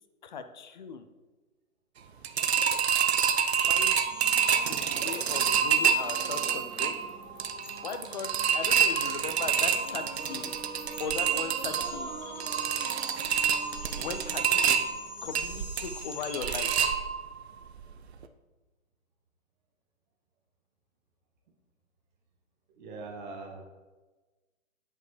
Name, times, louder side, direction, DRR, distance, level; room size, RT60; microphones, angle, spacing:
voice 1, 0.2-1.1 3.7-4.0 4.7-7.2 7.8-10.5 11.0-12.1 14.0-14.8 15.2-16.7, left 6 dB, 35° left, 9 dB, 0.5 m, -38 dB
sound 1, 2.2-17.4 17.8-17.9 18.2-18.3, right 7 dB, 50° right, 0.5 m, -27 dB
sound 2, 2.4-16.8, left 4 dB, 65° left, 1.6 m, -47 dB
sound 3, 4.1-15.4, right 3 dB, 70° right, 1.1 m, -46 dB
voice 2, 22.7-23.6, right 3 dB, 35° right, 1 dB, 1.3 m, -41 dB
9.0 x 5.4 x 3.3 m, 1.3 s
figure-of-eight pair, 125°, 41 cm